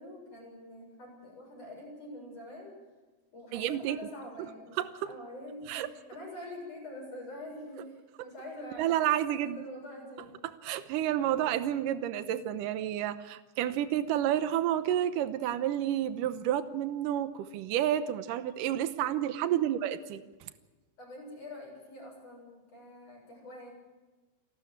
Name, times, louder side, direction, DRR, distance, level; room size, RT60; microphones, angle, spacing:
voice 1, 0.0-2.7 3.3-4.8 5.1-10.3 11.3-11.4 19.5-19.7 21.0-23.7, left 1 dB, 35° left, -1 dB, 8.1 m, -45 dB
voice 2, 3.5-4.0 4.8-5.1 5.7-5.9 8.8-9.6 10.6-20.2, right 11 dB, 80° right, 12 dB, 1.9 m, -30 dB
29.0 x 12.5 x 8.9 m, 1.2 s
omnidirectional pair, 5.1 m